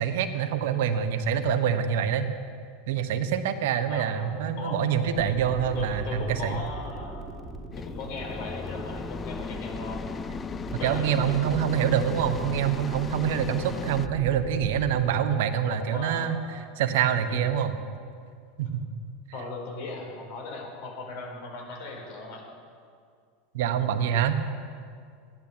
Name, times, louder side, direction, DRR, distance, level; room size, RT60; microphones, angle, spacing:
voice 1, 0.0-2.3 2.9-6.6 10.8-16.4 16.8-17.7 18.6-18.8 23.5-24.4, right 8 dB, 70° right, 8 dB, 1.1 m, -25 dB
voice 2, 3.9-4.9 5.7-7.2 7.7-10.0 10.7-11.1 15.8-16.4 17.3-17.4 19.3-22.4, left 3 dB, 65° left, 0 dB, 4.4 m, -38 dB
sound 1, 5.1-15.1, right 1 dB, 20° right, 2.0 m, -40 dB
sound 2, 7.7-14.1, left 6 dB, 25° left, 0.4 m, -37 dB
15.0 x 11.0 x 7.1 m, 2.2 s
hypercardioid pair, 90°, 0 cm